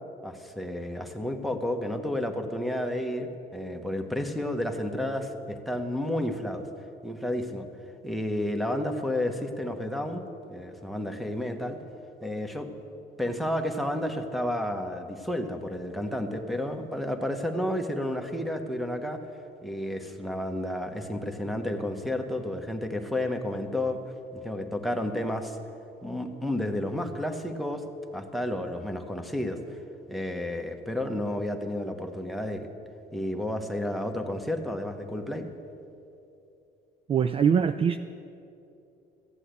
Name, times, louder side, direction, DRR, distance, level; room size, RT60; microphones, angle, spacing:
voice 1, 0.2-6.7 7.0-7.7 8.0-10.2 10.5-11.8 12.2-12.7 13.2-19.2 19.6-24.0 24.3-25.6 26.0-27.8 28.1-29.8 30.1-32.7 33.1-35.5, left 1 dB, ahead, 6 dB, 1.2 m, -31 dB
voice 2, 37.1-38.0, right 7 dB, 35° right, 11 dB, 0.4 m, -22 dB
14.0 x 8.4 x 8.2 m, 2.8 s
cardioid pair, 110°, 17 cm